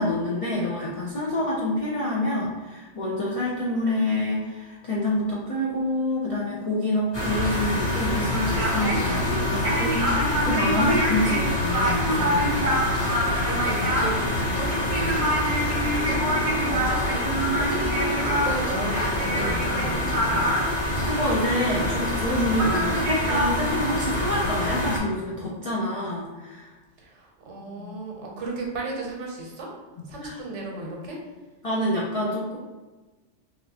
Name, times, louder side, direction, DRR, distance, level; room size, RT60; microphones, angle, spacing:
voice 1, 0.0-12.5 21.0-26.8 27.8-28.0 30.0-30.4 31.6-32.6, left 1 dB, 60° left, -5 dB, 0.3 m, -27 dB
sound 1, 7.1-25.0, left 1 dB, 25° left, 0.7 m, -26 dB
sound 2, 8.2-9.4 11.2-11.5 11.9-12.0 12.3-12.5 12.9-13.0 13.4-13.5 14.2-15.5 15.8-15.9 16.1-16.2 16.4-16.5 17.1-17.6 18.5-19.1 19.7-19.8 22.3-22.9, right 1 dB, 85° left, 1.3 m, -43 dB
sound 3, 8.3-22.3 22.6-23.5, equal, 50° right, 0.4 m, -27 dB
voice 2, 12.9-20.4 27.0-29.7 30.1-31.2, right 2 dB, 75° right, -1 dB, 1.0 m, -34 dB
3.0 x 2.8 x 2.7 m, 1.2 s
omnidirectional pair, 1.2 m